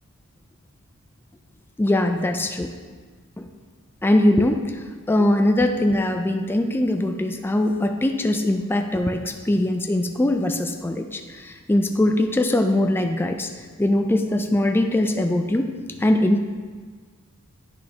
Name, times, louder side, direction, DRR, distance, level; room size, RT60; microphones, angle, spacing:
voice 1, 1.8-2.7 3.4-3.5 4.0-13.5 13.8-15.7 16.0-16.4, left 1 dB, 10° left, 5 dB, 0.3 m, -21 dB
9.8 x 6.2 x 2.8 m, 1.5 s
head